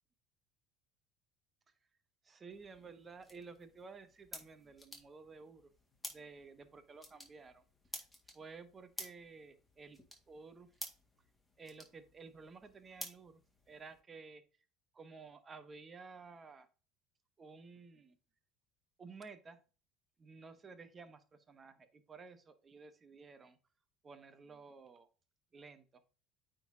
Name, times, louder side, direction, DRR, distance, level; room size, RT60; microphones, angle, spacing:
voice 1, 2.2-5.7 6.1-7.6 7.9-8.0 8.3-10.7 11.6-13.4 13.7-14.4 14.9-16.7 17.4-18.2 19.0-19.6 20.2-23.6 24.0-25.1 25.5-26.0, right 4 dB, 30° right, 11 dB, 1.0 m, -53 dB
sound 1, 2.5-14.0, left 1 dB, 10° left, 1.9 m, -53 dB
8.9 x 3.9 x 2.7 m, 0.35 s
hypercardioid pair, 75°, 0 cm